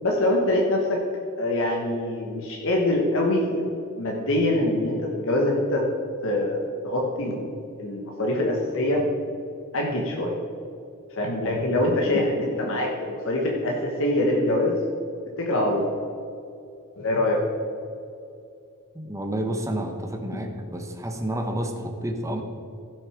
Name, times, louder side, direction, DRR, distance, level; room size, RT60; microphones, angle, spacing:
voice 1, 0.0-1.0 1.4-3.6 4.0-5.9 6.2-7.5 7.8-9.0 9.7-10.4 11.1-14.8 15.4-15.9 17.0-17.4, left 1 dB, 65° left, -1 dB, 1.4 m, -24 dB
voice 2, 11.4-11.9 18.9-22.4, right 1 dB, 15° right, 4 dB, 1.1 m, -30 dB
15.5 x 6.3 x 5.1 m, 2.7 s
head